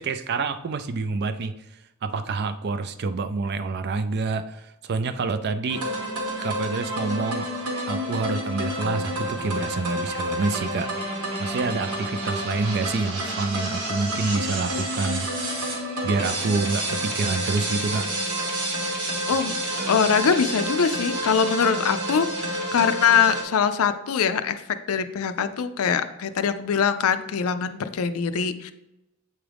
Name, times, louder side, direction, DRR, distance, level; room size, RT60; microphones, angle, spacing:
voice 1, 0.0-1.6 2.0-5.8 6.4-7.5 7.9-10.9 11.4-15.6 16.0-18.0, right 3 dB, 50° right, 10 dB, 0.4 m, -27 dB
sound 1, 5.7-23.4, right 1 dB, 85° right, 1.3 m, -29 dB
voice 2, 19.3-24.6 24.9-28.7, left 6 dB, 70° left, 11 dB, 0.4 m, -23 dB
7.8 x 3.6 x 3.4 m, 0.93 s
head